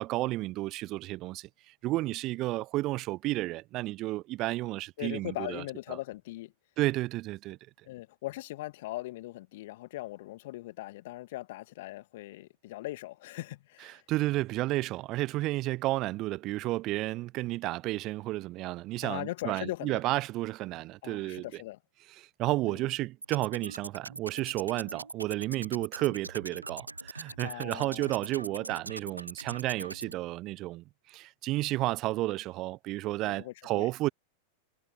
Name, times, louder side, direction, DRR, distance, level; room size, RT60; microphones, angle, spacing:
voice 1, 0.0-1.5 1.8-5.6 5.9-6.0 6.8-7.6 14.1-21.4 22.2-34.1, right 18 dB, 40° right, 0.9 m, -32 dB
voice 2, 5.0-6.5 7.8-14.0 19.0-20.0 21.0-21.8 22.7-22.9 27.2-28.1 33.2-33.9, left 17 dB, 55° left, 1.9 m, -40 dB
sound 1, 23.2-30.1, right 3 dB, 80° right, 0.3 m, -42 dB
figure-of-eight pair, 90°, 0 cm